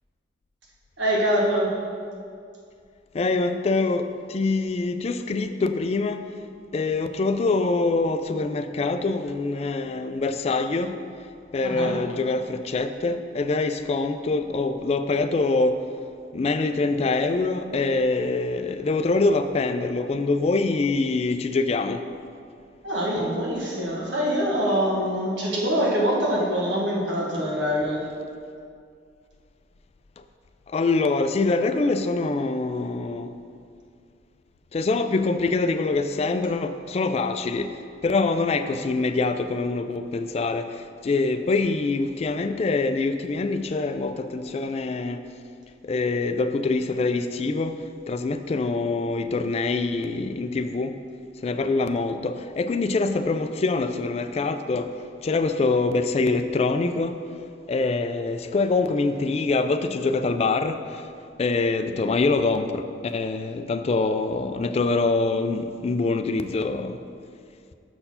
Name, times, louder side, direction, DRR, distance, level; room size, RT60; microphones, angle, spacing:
voice 1, 1.0-1.7 11.6-11.9 22.8-28.0, equal, 85° right, -3 dB, 1.4 m, -24 dB
voice 2, 3.1-6.3 6.7-11.0 11.5-15.8 16.3-22.0 30.7-33.3 34.7-37.7 38.0-40.7 41.0-45.2 45.8-47.7 48.1-51.0 51.4-54.9 55.2-57.2 57.7-60.8 61.4-67.0, left 3 dB, 35° left, 9 dB, 0.3 m, -24 dB
6.7 x 4.3 x 5.6 m, 2.3 s
head